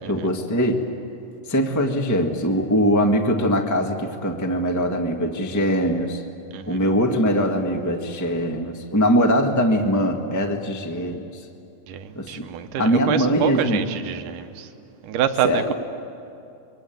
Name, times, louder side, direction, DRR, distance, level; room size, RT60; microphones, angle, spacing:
voice 1, 0.1-0.8 1.5-6.2 6.7-11.3 12.1-12.5 12.8-13.8 15.4-15.7, equal, 15° left, 3 dB, 0.5 m, -22 dB
voice 2, 6.5-6.8 11.9-14.7 15.0-15.7, right 10 dB, 75° right, 9 dB, 2.6 m, -27 dB
27.0 x 23.5 x 9.2 m, 2.6 s
omnidirectional pair, 3.8 m